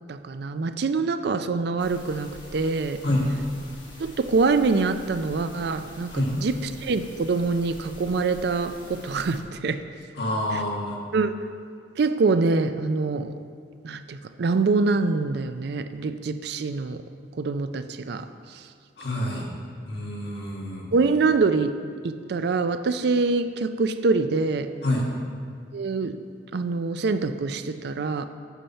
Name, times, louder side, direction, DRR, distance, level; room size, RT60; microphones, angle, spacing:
voice 1, 0.1-3.0 4.0-9.8 10.5-10.6 11.1-11.3 12.0-13.3 13.8-17.0 17.3-18.2 18.5-18.6 20.9-21.7 22.0-24.7 25.7-26.2 26.5-28.3, right 4 dB, 60° right, 10 dB, 0.4 m, -25 dB
sound 1, 1.8-9.4, left 1 dB, 25° left, 1.2 m, -45 dB
voice 2, 10.2-11.0 19.0-19.5 19.9-20.9 24.8-25.1, left 1 dB, 65° left, -2 dB, 1.6 m, -27 dB
8.2 x 5.7 x 5.5 m, 2.1 s
head